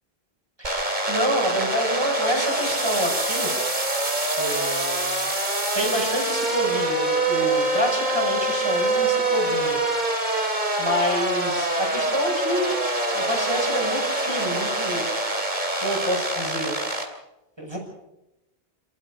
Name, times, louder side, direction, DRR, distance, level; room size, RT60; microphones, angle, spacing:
voice 1, 0.6-3.5 4.4-5.3 5.7-9.8 10.8-12.8 13.1-15.5 15.8-16.8 17.6-17.8, equal, 25° right, 1 dB, 6.2 m, -28 dB
sound 1, 0.6-17.0, right 2 dB, 45° right, 3.1 m, -25 dB
28.0 x 14.5 x 6.8 m, 0.93 s
omnidirectional pair, 1.0 m